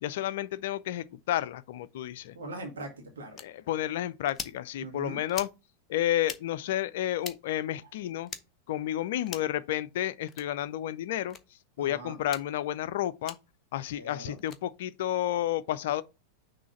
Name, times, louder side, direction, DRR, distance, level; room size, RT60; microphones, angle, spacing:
voice 1, 0.0-2.4 3.4-5.5 5.9-8.3 8.7-11.4 11.8-13.4 13.7-16.0, left 12 dB, 55° left, 0.5 m, -31 dB
voice 2, 2.3-3.4 4.8-5.2 11.8-12.2 14.0-14.4, right 2 dB, 65° right, 1.6 m, -41 dB
sound 1, 3.4-3.5 4.3-4.6 5.3-5.6 6.2-6.4 7.2-7.4 8.3-8.4 9.3-9.6 10.3-10.5 11.3-11.4 12.2-12.5 13.3-13.4 14.4-14.6, left 6 dB, 25° left, 0.8 m, -40 dB
6.2 x 3.2 x 5.6 m
figure-of-eight pair, 90°, 0 cm